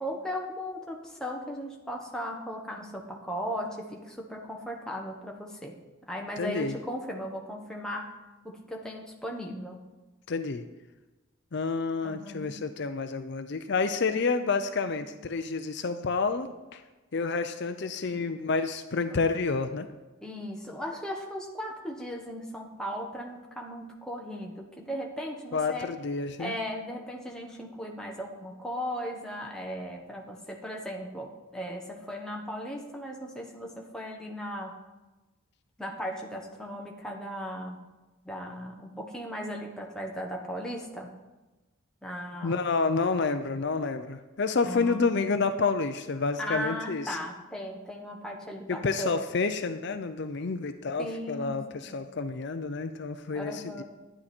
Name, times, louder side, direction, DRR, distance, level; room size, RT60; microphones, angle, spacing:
voice 1, 0.0-5.7 6.1-8.1 8.4-9.8 12.0-12.6 14.8-15.1 18.1-18.3 19.1-19.2 20.2-25.9 26.4-34.7 35.8-37.8 38.2-41.1 42.0-42.6 44.7-45.0 46.4-49.2 51.0-52.0 53.3-53.8, equal, 5° left, -1 dB, 1.1 m, -37 dB
voice 2, 6.4-6.7 10.3-10.6 11.5-16.8 17.1-19.9 25.5-26.5 42.4-47.2 48.7-53.8, left 4 dB, 55° left, 9 dB, 0.5 m, -29 dB
12.5 x 9.9 x 4.4 m, 1.1 s
head